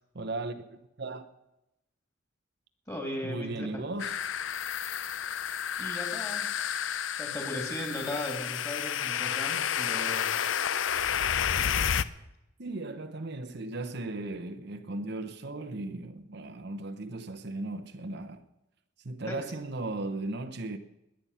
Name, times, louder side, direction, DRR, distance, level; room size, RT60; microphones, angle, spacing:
voice 1, 0.1-1.3 3.2-4.2 12.6-18.4 19.0-20.8, right 2 dB, 55° right, 0.9 m, -36 dB
voice 2, 2.9-3.7 5.8-6.5 7.2-10.3 19.3-19.4, left 1 dB, 15° left, 3.1 m, -37 dB
sound 1, 4.0-12.0, left 8 dB, 75° left, 0.5 m, -30 dB
21.0 x 8.9 x 5.7 m
head